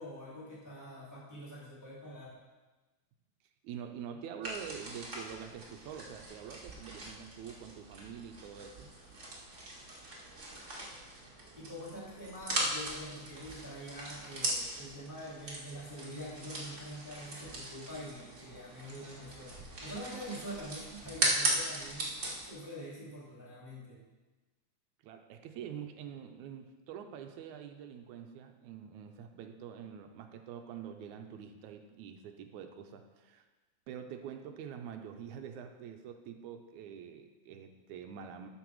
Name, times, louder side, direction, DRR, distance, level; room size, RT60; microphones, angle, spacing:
voice 1, 0.0-2.4 11.6-24.0, equal, 5° right, -7 dB, 2.0 m, -45 dB
voice 2, 3.6-8.9 25.0-33.5 33.9-38.5, right 8 dB, 85° right, 6 dB, 2.1 m, -46 dB
sound 1, 4.4-22.5, right 2 dB, 30° right, 1.5 m, -39 dB
12.5 x 5.9 x 4.7 m, 1.2 s
omnidirectional pair, 3.4 m